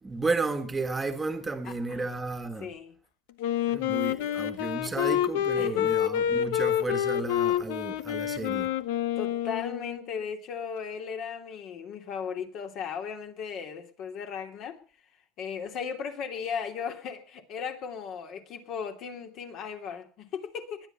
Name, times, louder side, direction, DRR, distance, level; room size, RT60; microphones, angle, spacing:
voice 1, 0.0-2.7 3.7-8.7, right 3 dB, 15° right, 1.5 m, -33 dB
voice 2, 1.6-2.0 2.6-2.9 5.6-5.9 9.1-14.8 15.4-20.9, left 6 dB, 50° left, 2.8 m, -36 dB
Wind instrument woodwind instrument, 3.4-10.1, left 11 dB, 90° left, 1.2 m, -28 dB
21.5 x 10.0 x 5.6 m
cardioid pair, 135°, 0 cm